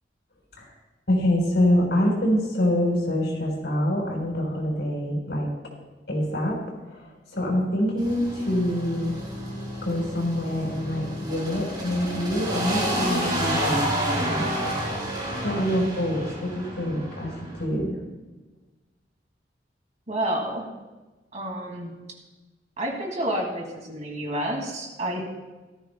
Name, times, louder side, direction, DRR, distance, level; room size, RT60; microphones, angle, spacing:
voice 1, 1.1-5.5 6.1-6.6 6.9-9.2 9.8-13.8 14.1-14.5 15.4-18.0, left 1 dB, 70° left, 0 dB, 4.2 m, -25 dB
sound 1, 8.0-17.6, right 1 dB, 25° right, 4.3 m, -30 dB
voice 2, 15.5-15.9 20.1-20.7 21.3-21.9 22.8-25.3, right 1 dB, 40° right, 1 dB, 2.4 m, -30 dB
17.5 x 13.5 x 2.3 m, 1.2 s
head